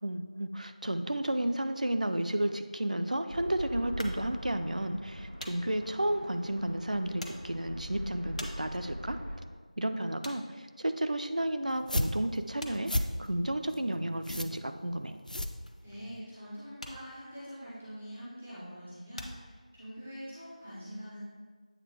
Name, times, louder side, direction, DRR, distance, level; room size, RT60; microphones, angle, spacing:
voice 1, 0.0-9.2 9.8-15.2, right 1 dB, 70° right, 8 dB, 0.4 m, -32 dB
sound 1, 3.3-9.4, equal, 90° right, 1.6 m, -42 dB
sound 2, 4.0-11.8 12.1-20.2, left 1 dB, 60° left, 0.8 m, -49 dB
sound 3, 11.7-16.2, left 1 dB, 85° left, 0.4 m, -35 dB
voice 2, 15.8-21.2, equal, 5° right, -12 dB, 0.3 m, -44 dB
8.2 x 3.0 x 4.5 m, 1.5 s
figure-of-eight pair, 175°, 4 cm